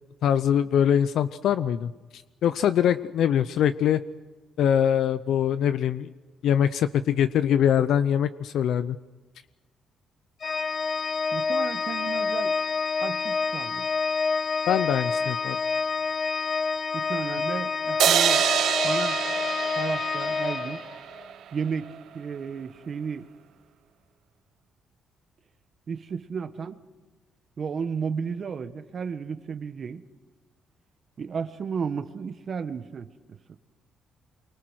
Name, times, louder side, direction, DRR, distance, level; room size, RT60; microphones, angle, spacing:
voice 1, 0.2-4.0 4.6-6.1 6.4-9.0 14.7-15.6, left 9 dB, 75° left, 0.6 m, -23 dB
Organ, 10.4-21.3, left 5 dB, 45° left, 1.1 m, -28 dB
voice 2, 11.3-12.6 13.0-13.9 16.9-18.5 18.8-19.2 19.8-20.8 21.5-23.3 25.9-26.8 27.6-30.0 31.2-33.1, right 6 dB, 50° right, 1.4 m, -33 dB
sound 1, 18.0-21.3, right 9 dB, 80° right, 1.6 m, -25 dB
25.0 x 24.0 x 6.4 m
cardioid pair, 90°, 0 cm